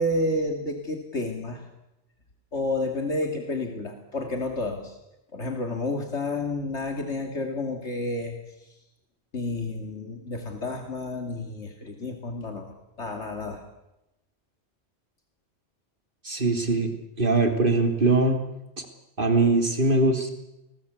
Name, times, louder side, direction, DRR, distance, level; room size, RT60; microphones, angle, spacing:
voice 1, 0.0-1.6 2.5-5.0 5.3-8.4 9.3-13.6, left 2 dB, 70° left, 4 dB, 2.9 m, -30 dB
voice 2, 16.2-16.9 17.2-18.4 18.8-18.9 19.2-20.3, right 2 dB, 45° right, 4 dB, 3.4 m, -22 dB
28.5 x 20.0 x 8.3 m, 0.91 s
omnidirectional pair, 1.2 m